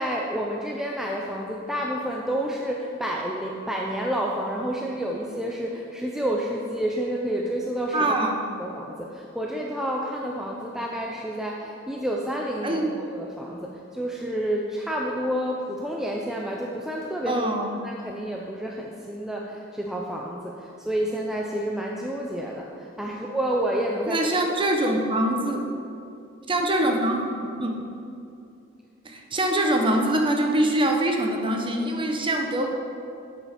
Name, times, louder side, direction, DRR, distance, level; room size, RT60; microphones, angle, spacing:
voice 1, 0.0-8.2 8.6-24.3, right 1 dB, ahead, -2 dB, 0.5 m, -29 dB
voice 2, 7.9-8.4 12.6-12.9 17.3-17.7 23.0-23.1 24.1-25.6 26.5-27.8 29.0-32.7, right 1 dB, 25° right, 2 dB, 0.9 m, -24 dB
7.8 x 7.4 x 5.0 m, 2.6 s
head